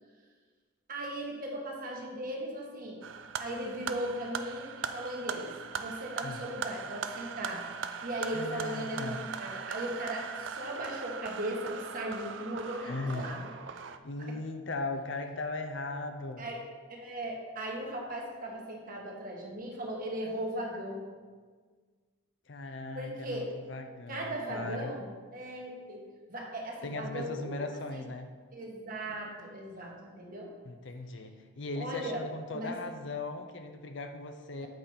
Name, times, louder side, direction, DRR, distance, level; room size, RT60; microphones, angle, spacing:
voice 1, 0.9-3.1 3.4-5.5 5.8-7.7 8.0-13.5 14.2-14.3 16.4-16.6 16.9-21.1 22.9-23.5 24.1-27.6 27.9-28.0 28.5-30.5 31.7-32.2 32.5-32.7 34.6-34.7, right 1 dB, 40° right, -1 dB, 1.3 m, -38 dB
sound 1, 3.0-14.0, right 6 dB, 60° right, 0.4 m, -40 dB
voice 2, 8.3-9.2 12.8-13.3 14.0-16.5 22.5-24.9 26.8-28.3 30.6-34.7, left 2 dB, 60° left, 6 dB, 0.6 m, -38 dB
8.0 x 5.2 x 4.2 m, 1.5 s
head